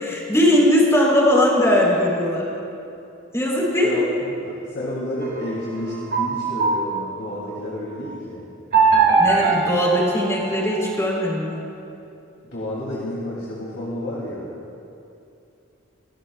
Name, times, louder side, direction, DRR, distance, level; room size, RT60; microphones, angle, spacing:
voice 1, 0.0-2.5 3.3-4.0 9.2-11.6, left 1 dB, 15° left, -4 dB, 4.0 m, -19 dB
voice 2, 3.8-8.4 12.5-14.5, left 1 dB, 60° left, -6 dB, 3.0 m, -30 dB
sound 1, 5.2-7.5 8.7-11.0, right 4 dB, 55° right, 2.4 m, -21 dB
25.5 x 17.5 x 2.4 m, 2.7 s
head